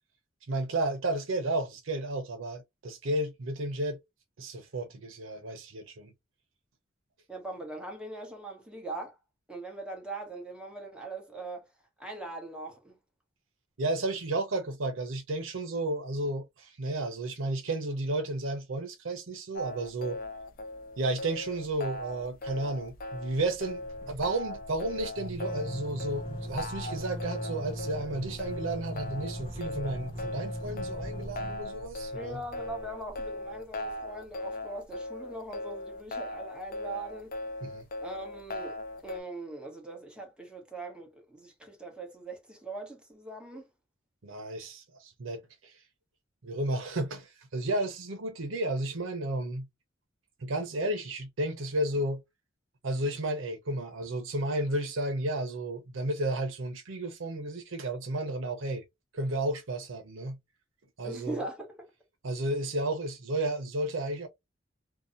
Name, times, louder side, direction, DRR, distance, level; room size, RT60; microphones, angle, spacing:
voice 1, 0.5-4.0 4.4-6.1 13.8-20.2 21.0-32.4 37.6-37.8 44.2-45.8 46.4-49.7 50.4-52.2 52.8-58.8 59.1-60.4 61.0-61.4 62.2-64.3, right 2 dB, 85° right, 0.7 m, -32 dB
voice 2, 7.3-9.2 9.5-11.7 12.0-13.0 32.1-37.3 38.0-38.8 39.0-43.6 61.0-61.9, right 2 dB, 5° right, 1.0 m, -41 dB
sound 1, 19.5-39.2, left 1 dB, 45° left, 0.5 m, -39 dB
sound 2, 22.9-23.0 23.3-33.9, equal, 25° left, 1.0 m, -40 dB
2.7 x 2.2 x 2.5 m
head